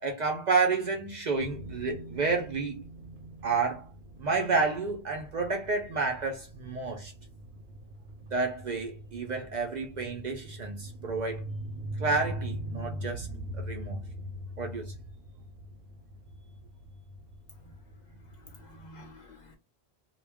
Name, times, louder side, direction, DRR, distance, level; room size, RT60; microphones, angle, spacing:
voice 1, 0.0-2.8 3.4-3.9 4.2-7.1 8.3-11.5 12.0-13.3 13.5-14.0 14.6-14.9, right 4 dB, 55° right, 0.5 m, -30 dB
sound 1, 1.4-18.9, right 1 dB, 75° right, 0.9 m, -42 dB
voice 2, 17.6-19.6, left 1 dB, 50° left, 0.6 m, -53 dB
2.2 x 2.2 x 3.4 m
omnidirectional pair, 1.1 m